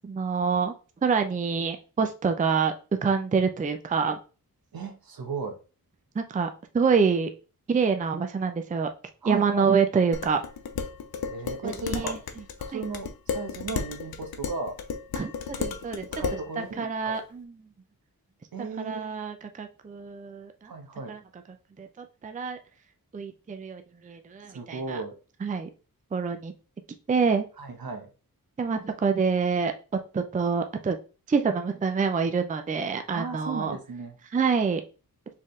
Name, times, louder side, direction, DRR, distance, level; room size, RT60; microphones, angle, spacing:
voice 1, 0.0-0.7 1.0-2.7 3.0-4.2 6.1-7.3 7.7-8.9 9.2-10.4 11.6-12.2 12.7-12.9 15.2-16.2 16.6-17.7 18.6-20.7 21.1-21.4 21.8-22.6 23.1-25.0 25.4-25.7 26.1-26.5 27.1-27.5 28.6-29.7 30.1-31.0 31.3-33.8 34.3-34.8, right 5 dB, 20° right, 0.4 m, -26 dB
voice 2, 4.7-5.6 9.2-9.7 11.3-12.2 12.7-14.8 16.1-17.2 18.5-19.2 20.7-21.1 24.4-25.2 27.6-28.1 33.1-34.1, right 4 dB, 70° right, 1.0 m, -35 dB
Dishes pots and pans, 10.1-16.5, left 6 dB, 75° left, 0.6 m, -34 dB
4.3 x 3.6 x 3.1 m
wide cardioid pair, 135°, 37 cm